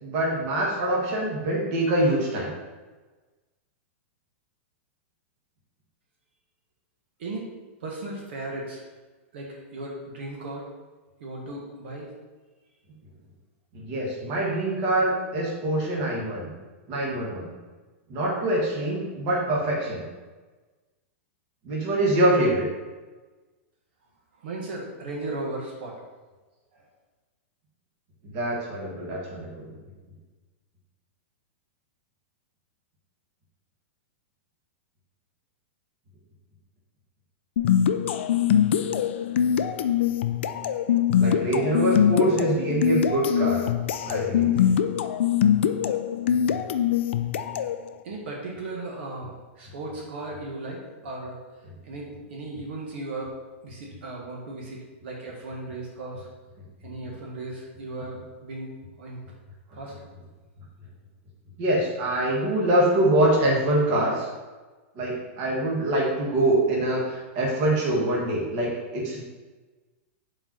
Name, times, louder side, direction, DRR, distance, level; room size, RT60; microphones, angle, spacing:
voice 1, 0.0-2.5 13.7-16.5 16.9-17.5 18.1-20.0 21.6-22.7 28.2-29.7 41.2-43.6 44.1-44.6 61.6-64.3 64.9-69.2, right 1 dB, 30° right, -4 dB, 1.5 m, -24 dB
voice 2, 7.2-7.5 7.8-8.8 9.3-10.7 11.2-12.1 24.4-25.9 26.7-26.9 48.0-51.4 51.8-53.3 53.6-56.3 56.8-58.7 59.0-59.2 59.7-59.9, right 2 dB, 55° right, -2 dB, 1.4 m, -36 dB
sound 1, 37.6-47.8, left 9 dB, 60° left, 0.4 m, -23 dB
5.4 x 4.3 x 6.0 m, 1.3 s
supercardioid pair, 180°, 7 cm